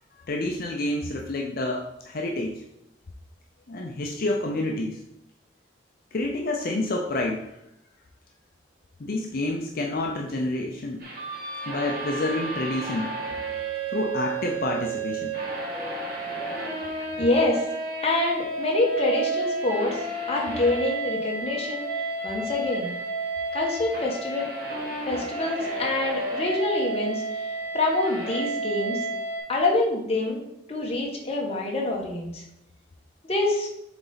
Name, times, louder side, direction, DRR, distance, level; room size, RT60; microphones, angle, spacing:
voice 1, 0.3-2.6 3.7-5.0 6.1-7.5 9.0-11.1 11.7-13.1 13.9-15.3, left 2 dB, 50° left, 0 dB, 0.6 m, -28 dB
sound 1, 11.0-29.4, right 2 dB, 50° right, 1.5 m, -31 dB
voice 2, 17.2-17.6 18.0-20.0 20.3-21.8 22.2-22.9 23.5-24.5 25.1-27.2 27.7-29.0 29.5-30.4 30.7-32.4 33.3-33.7, left 2 dB, 30° left, -1 dB, 1.2 m, -26 dB
7.1 x 4.0 x 4.0 m, 0.81 s
head